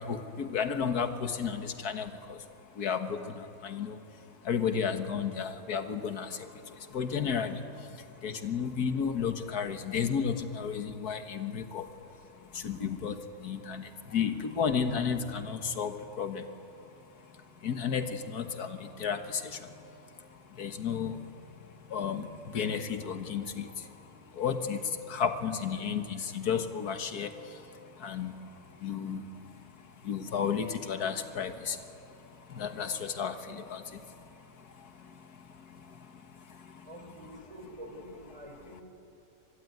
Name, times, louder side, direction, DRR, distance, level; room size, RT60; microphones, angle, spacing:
voice 1, 0.0-36.9, left 6 dB, 70° left, 8 dB, 1.9 m, -34 dB
voice 2, 36.8-38.8, equal, 20° right, 2 dB, 4.4 m, -47 dB
26.0 x 20.5 x 9.5 m, 2.7 s
omnidirectional pair, 1.7 m